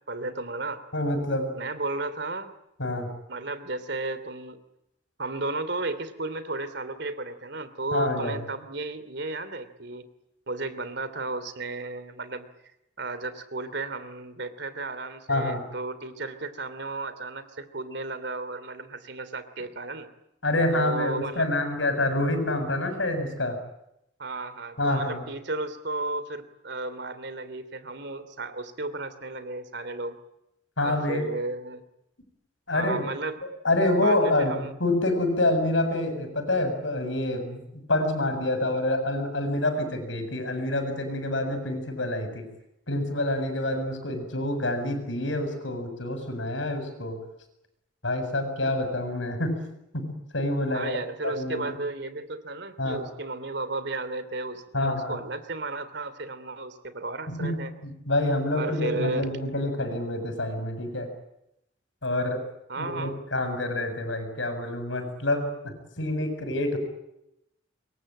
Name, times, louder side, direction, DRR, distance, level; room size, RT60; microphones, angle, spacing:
voice 1, 0.1-0.8 1.5-2.5 3.3-4.6 5.2-10.0 10.5-12.5 13.0-20.1 20.7-21.5 24.2-30.2 30.8-31.8 32.7-33.4 34.0-34.7 50.7-57.7 58.5-59.2 62.7-63.2, right 2 dB, 60° right, 13 dB, 3.0 m, -34 dB
voice 2, 0.9-1.5 2.8-3.1 7.9-8.4 15.3-15.7 20.4-23.6 24.8-25.2 30.8-31.3 32.7-33.0 33.6-42.5 42.9-47.2 48.0-49.6 49.9-51.0 51.2-51.8 52.8-53.0 54.7-55.2 57.3-61.1 62.0-62.4 62.8-66.8, left 1 dB, 75° left, 8 dB, 7.2 m, -27 dB
27.0 x 23.0 x 8.9 m, 0.84 s
head